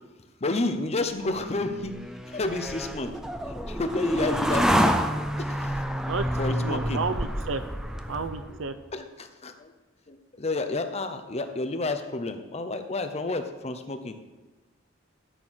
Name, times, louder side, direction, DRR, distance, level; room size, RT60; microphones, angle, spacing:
voice 1, 0.4-1.9 2.3-3.1 3.7-5.0 5.4-5.8 6.4-7.0 8.9-9.7 10.1-14.2, left 2 dB, 30° left, 8 dB, 0.8 m, -30 dB
sound 1, 1.3-8.7, equal, 5° right, 0.5 m, -28 dB
voice 2, 6.1-7.6 8.1-8.8, right 4 dB, 75° right, 12 dB, 0.6 m, -31 dB
12.5 x 4.5 x 6.3 m, 1.1 s
head